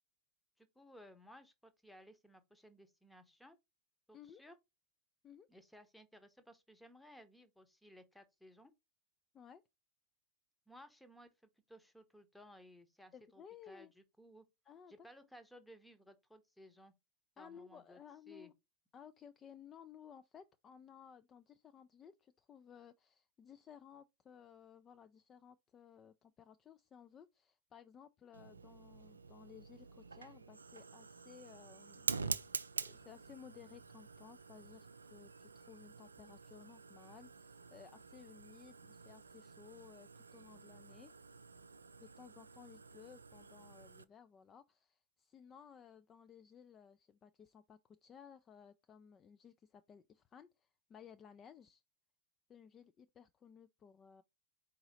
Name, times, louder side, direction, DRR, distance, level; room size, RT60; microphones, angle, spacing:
voice 1, 0.6-3.6 4.1-4.5 5.5-8.7 10.7-14.5 14.9-16.9 17.4-18.0 18.3-18.5, equal, 5° left, 0.8 m, -59 dB
voice 2, 13.1-13.9 14.7-15.1 17.4-18.5 18.9-41.1 42.0-51.8 52.5-54.2, left 8 dB, 25° left, 0.3 m, -58 dB
Fire, 28.3-44.0, right 4 dB, 75° right, 0.3 m, -47 dB
4.7 x 2.8 x 4.0 m
figure-of-eight pair, 90°, 0 cm